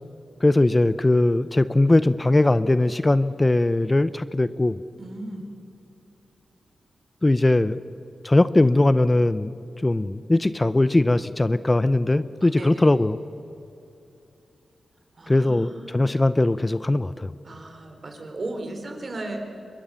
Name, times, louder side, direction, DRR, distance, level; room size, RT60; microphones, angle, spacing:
voice 1, 0.4-4.8 7.2-7.8 8.2-9.5 9.8-13.2 15.3-17.3, left 2 dB, 25° left, 14 dB, 0.6 m, -20 dB
voice 2, 5.0-5.5 12.1-12.9 15.2-16.0 17.4-19.5, right 2 dB, 50° right, 4 dB, 4.0 m, -36 dB
24.0 x 21.5 x 7.0 m, 2.7 s
cardioid pair, 65°, 0 cm